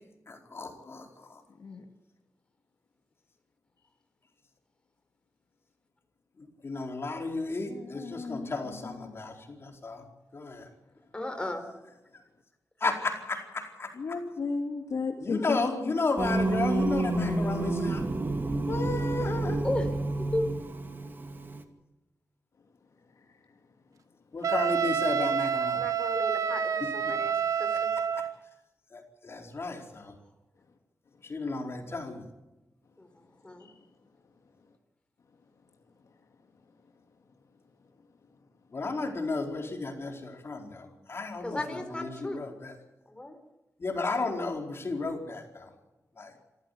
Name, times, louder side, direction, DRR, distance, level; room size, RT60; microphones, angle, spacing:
voice 1, 0.3-1.1 6.6-10.0 10.3-10.7 12.8-13.9 15.2-18.0 18.7-19.6 24.3-25.8 26.8-27.1 28.9-30.1 31.3-32.2 38.7-42.7 43.8-45.7 46.2-46.3, left 3 dB, 45° left, 3 dB, 4.5 m, -33 dB
voice 2, 7.7-9.1 14.0-15.6 17.0-17.9, left 4 dB, 70° left, 4 dB, 2.3 m, -34 dB
voice 3, 11.1-11.7 19.6-19.9 20.3-20.5 25.8-27.3 27.6-27.7 33.0-33.1 33.4-33.7 41.4-42.4 43.1-43.4, left 1 dB, 20° left, 6 dB, 4.1 m, -34 dB
Singing, 16.2-21.6, right 2 dB, 35° right, 2.5 m, -30 dB
Wind instrument woodwind instrument, 24.4-28.3, right 7 dB, 75° right, 1.3 m, -28 dB
26.5 x 15.0 x 8.4 m, 1.0 s
wide cardioid pair, 105°, 6 cm